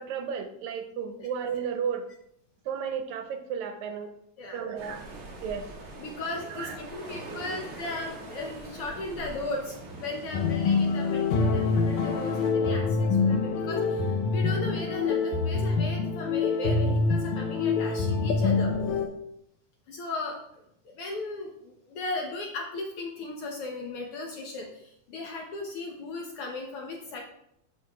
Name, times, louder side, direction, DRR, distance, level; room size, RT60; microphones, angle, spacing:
voice 1, 0.0-2.1 2.7-4.1 4.5-5.0 5.4-5.7 6.5-7.6 8.4-8.5, right 7 dB, 90° right, 7 dB, 2.1 m, -34 dB
sound 1, 4.8-12.5, right 2 dB, 40° right, 1.4 m, -43 dB
voice 2, 6.0-18.7 19.9-27.2, left 2 dB, 65° left, 0 dB, 1.5 m, -37 dB
sound 2, 10.3-19.1, left 4 dB, 85° left, 2.2 m, -25 dB
12.0 x 4.6 x 2.3 m, 0.74 s
omnidirectional pair, 3.3 m